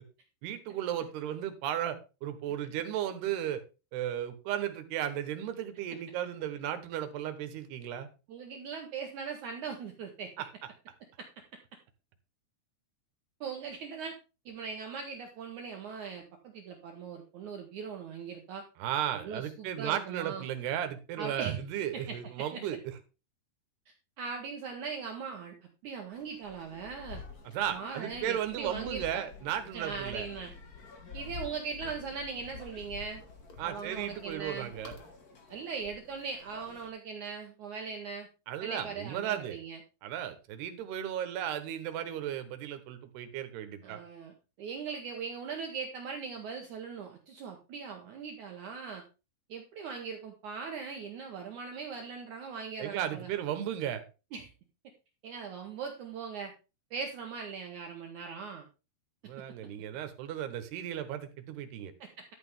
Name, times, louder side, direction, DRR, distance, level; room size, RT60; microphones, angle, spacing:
voice 1, 0.4-3.6 3.9-8.1 10.4-10.5 18.8-22.8 27.5-30.3 33.6-34.9 38.5-39.6 40.0-44.0 52.8-54.0 59.2-61.9, right 10 dB, 90° right, 9 dB, 3.3 m, -35 dB
voice 2, 8.3-10.3 11.2-11.3 13.4-14.2 14.5-18.6 19.1-20.5 21.2-21.6 21.9-22.6 24.2-25.6 25.8-27.2 27.7-29.2 29.7-30.5 31.1-33.2 33.6-34.7 35.5-38.3 38.6-39.8 43.8-49.0 49.5-53.3 54.3-54.5 55.2-56.5 56.9-58.6 62.0-62.3, right 5 dB, 65° right, 3 dB, 2.1 m, -40 dB
sound 1, 26.1-36.9, left 5 dB, 55° left, 1.0 m, -49 dB
12.0 x 8.5 x 3.6 m, 0.31 s
omnidirectional pair, 4.6 m